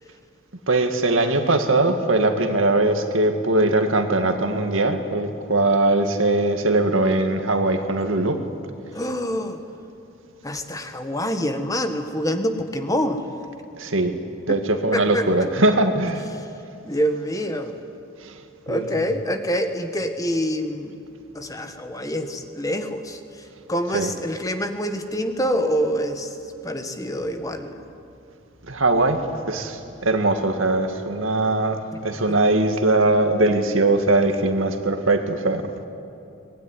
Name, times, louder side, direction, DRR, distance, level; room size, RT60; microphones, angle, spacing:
voice 1, 0.7-8.4 13.8-14.2 14.5-16.3 18.2-18.4 18.7-19.1 23.9-24.1 28.7-35.7, right 2 dB, 75° right, 6 dB, 2.1 m, -21 dB
voice 2, 8.9-9.6 10.4-13.2 14.5-14.6 14.9-15.5 16.8-17.7 18.7-21.0 21.3-23.2 23.7-26.4 26.6-27.8 32.3-32.4, equal, 15° left, 7 dB, 1.5 m, -26 dB
24.0 x 20.5 x 9.9 m, 2.6 s
head